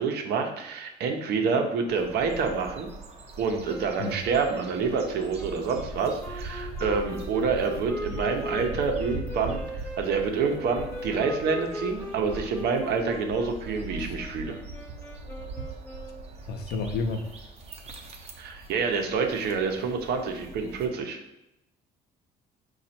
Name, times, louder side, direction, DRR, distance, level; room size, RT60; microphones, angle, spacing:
voice 1, 0.0-2.9 3.4-14.6 18.4-21.2, right 5 dB, 75° right, 4 dB, 0.7 m, -27 dB
sound 1, 1.9-20.9, right 2 dB, 40° right, 0.7 m, -41 dB
sound 2, 3.7-16.3, equal, 10° left, 0.8 m, -39 dB
voice 2, 16.5-17.4, left 4 dB, 75° left, 5 dB, 0.6 m, -31 dB
5.1 x 2.4 x 4.3 m, 0.86 s
cardioid pair, 110°, 17 cm